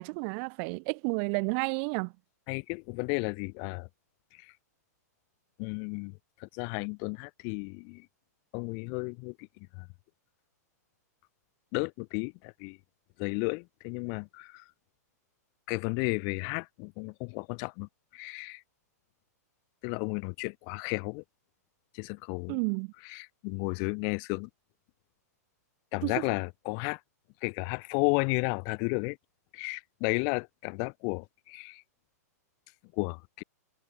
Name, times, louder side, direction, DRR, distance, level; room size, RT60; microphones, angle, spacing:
voice 1, 0.0-2.1 22.5-22.9 26.0-26.2, right 40 dB or more, 40° right, 2.7 m, -31 dB
voice 2, 2.5-3.9 4.3-4.5 5.6-8.1 8.5-9.5 9.7-9.9 11.7-12.8 13.2-14.6 15.7-18.6 19.8-21.2 21.9-22.6 23.0-24.5 25.9-27.0 27.4-29.2 29.5-31.8 32.9-33.4, left 40 dB or more, 40° left, 6.7 m, -33 dB
hypercardioid pair, 135°, 9 cm